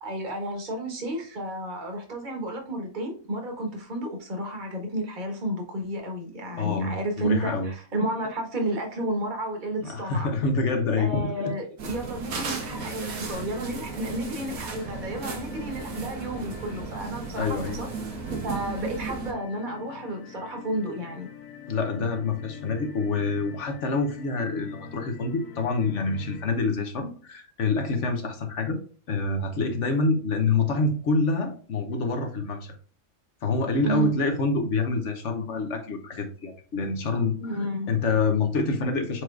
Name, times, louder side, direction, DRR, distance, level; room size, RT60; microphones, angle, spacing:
voice 1, 0.0-10.3 11.0-17.9 18.4-21.3 33.8-34.1 37.4-37.9, right 1 dB, 35° right, 2 dB, 1.4 m, -32 dB
voice 2, 6.6-7.7 9.8-11.5 17.3-17.8 21.7-28.8 29.1-32.7 33.4-37.6 37.9-39.2, left 3 dB, 60° left, 4 dB, 1.1 m, -26 dB
sound 1, 11.8-19.3, right 4 dB, 85° right, 1.5 m, -35 dB
sound 2, 12.5-26.5, left 7 dB, 80° left, 1.1 m, -46 dB
4.6 x 4.6 x 2.4 m, 0.43 s
omnidirectional pair, 1.4 m